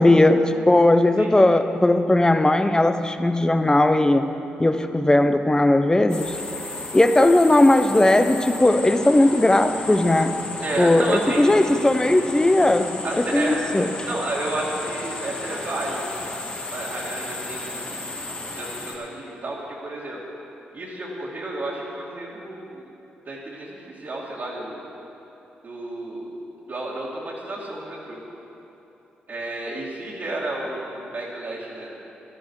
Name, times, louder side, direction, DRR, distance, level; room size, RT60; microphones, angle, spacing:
voice 1, 0.0-4.3 4.6-6.4 6.9-10.4 10.8-13.0 13.3-13.9, left 1 dB, 20° left, 9 dB, 0.8 m, -18 dB
sound 1, 6.1-19.0, left 2 dB, 35° left, 2.6 m, -34 dB
voice 2, 10.6-11.4 13.0-13.7 14.1-16.0 16.7-18.1 18.5-20.2 20.7-22.9 23.3-24.8 25.6-26.3 26.7-28.2 29.3-31.9, right 2 dB, 55° right, -8 dB, 2.5 m, -31 dB
14.5 x 12.0 x 4.8 m, 3.0 s
supercardioid pair, 45°, 4 cm